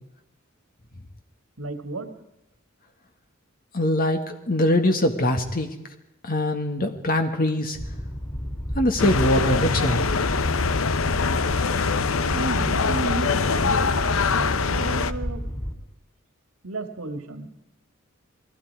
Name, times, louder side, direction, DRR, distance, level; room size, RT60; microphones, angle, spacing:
voice 1, 1.6-2.1 12.3-15.4 16.6-17.5, right 3 dB, 80° right, 7 dB, 2.3 m, -33 dB
voice 2, 3.7-5.7 6.2-7.8 8.7-10.1, left 1 dB, 45° left, 6 dB, 1.8 m, -22 dB
Boat Water vehicle, 7.7-15.7, equal, 20° left, 3.9 m, -32 dB
sound 1, 9.0-15.1, left 5 dB, 70° left, 0.9 m, -23 dB
28.5 x 21.0 x 4.8 m, 0.89 s
head